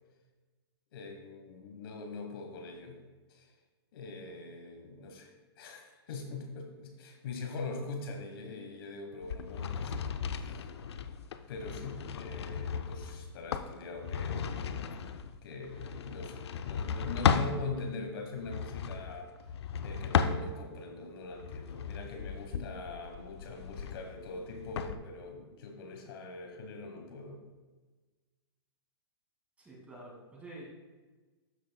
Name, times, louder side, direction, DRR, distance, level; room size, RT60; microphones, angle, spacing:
voice 1, 0.9-3.0 3.3-3.5 3.9-10.7 11.5-14.6 15.4-19.3 19.8-27.4, left 3 dB, 60° left, 3 dB, 1.4 m, -42 dB
sound 1, 9.2-17.6 18.4-20.8 21.3-24.9, left 7 dB, 75° left, 0.5 m, -35 dB
voice 2, 29.6-30.6, right 2 dB, 10° right, -4 dB, 2.3 m, -48 dB
13.0 x 6.3 x 2.3 m, 1.3 s
hypercardioid pair, 140°, 14 cm